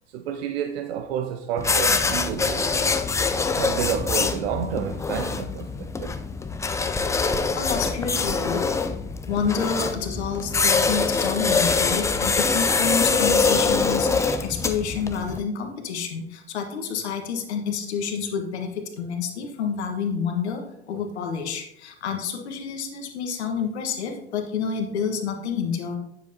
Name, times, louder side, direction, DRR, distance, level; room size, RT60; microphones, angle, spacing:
voice 1, 0.1-2.8 3.5-6.1, right 8 dB, 65° right, 0.7 m, -30 dB
sound 1, 1.6-15.4, left 4 dB, 10° left, 0.4 m, -24 dB
voice 2, 7.6-8.7 9.3-20.6 20.9-26.0, left 6 dB, 70° left, 1.4 m, -29 dB
9.5 x 7.0 x 2.8 m
figure-of-eight pair, 75°, 34 cm